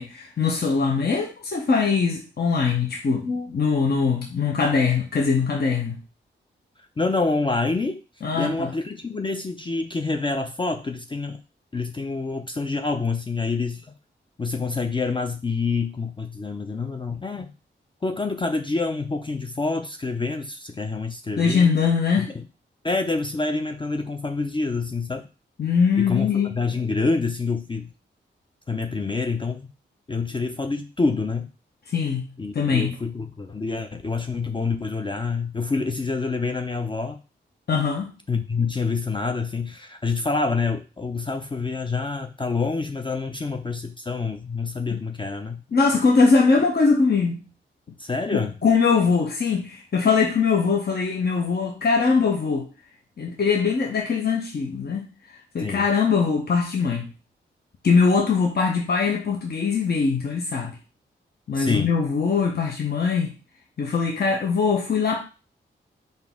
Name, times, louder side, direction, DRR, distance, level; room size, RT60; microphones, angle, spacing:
voice 1, 0.0-6.0 8.2-8.7 21.4-22.4 25.6-26.6 31.9-32.2 32.5-33.0 37.7-38.1 44.9-45.0 45.7-47.4 48.3-52.7 53.2-55.1 55.5-57.1 57.8-60.8 61.5-63.3 63.8-65.2, left 5 dB, 50° left, 0.8 m, -22 dB
voice 2, 7.0-8.0 8.3-11.4 11.7-13.9 14.4-17.5 18.0-21.7 22.2-22.4 22.8-25.2 26.0-27.9 28.7-29.7 30.1-31.5 32.4-37.2 38.3-45.6 48.0-48.5 55.6-55.9 61.5-61.9, left 3 dB, 25° left, 0.4 m, -27 dB
4.0 x 2.6 x 3.5 m
cardioid pair, 45°, 21 cm